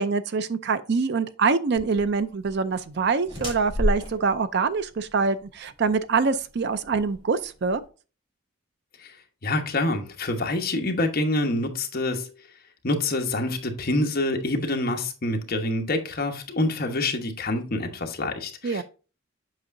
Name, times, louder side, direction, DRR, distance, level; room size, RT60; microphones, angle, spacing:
voice 1, 0.0-7.8 18.6-18.8, right 4 dB, 55° right, 0.5 m, -25 dB
sound 1, 1.7-7.8, equal, 25° right, 3.2 m, -33 dB
voice 2, 9.4-12.3 12.8-18.8, left 2 dB, 50° left, 1.1 m, -26 dB
7.9 x 5.6 x 2.6 m
head